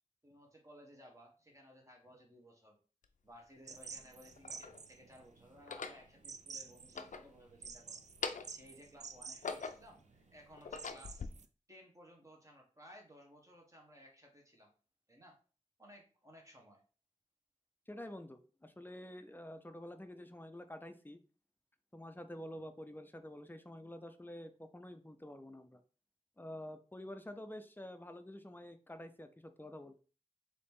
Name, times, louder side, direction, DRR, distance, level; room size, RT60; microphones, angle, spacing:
voice 1, 0.2-2.8 3.2-8.0 8.5-11.3 11.7-14.7 15.1-15.4 15.8-16.8, equal, 25° right, 0 dB, 1.3 m, -59 dB
sound 1, 3.0-3.1 4.0-4.8 5.5-6.0 6.8-7.7 8.0-8.7 9.1-10.0 10.5-11.3, left 5 dB, 90° left, 0.4 m, -43 dB
sound 2, 3.7-11.5, right 5 dB, 65° right, 0.4 m, -51 dB
voice 2, 17.9-21.2 21.9-25.8 26.4-30.0, left 1 dB, 15° left, 8 dB, 0.5 m, -48 dB
4.0 x 2.8 x 3.5 m, 0.37 s
wide cardioid pair, 70°, 13 cm